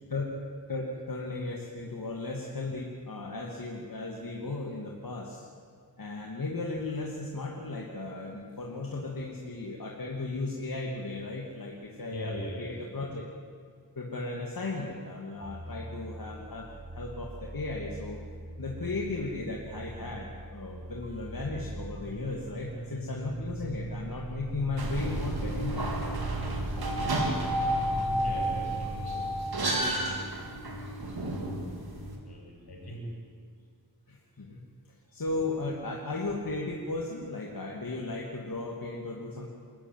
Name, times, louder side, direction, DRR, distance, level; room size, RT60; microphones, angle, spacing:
voice 1, 0.7-5.4 6.0-12.3 12.6-13.3 14.0-18.2 18.6-25.9 34.1-34.6 35.1-39.5, left 3 dB, 60° left, -1 dB, 2.8 m, -36 dB
voice 2, 12.0-12.8 28.2-29.4 32.3-33.1, left 1 dB, 80° left, -1 dB, 7.2 m, -40 dB
sound 1, 14.6-29.4, right 2 dB, 20° right, 1.7 m, -41 dB
sound 2, 24.8-32.2, right 1 dB, 70° right, 4.0 m, -31 dB
28.0 x 14.0 x 9.3 m, 2.2 s
wide cardioid pair, 60°, 39 cm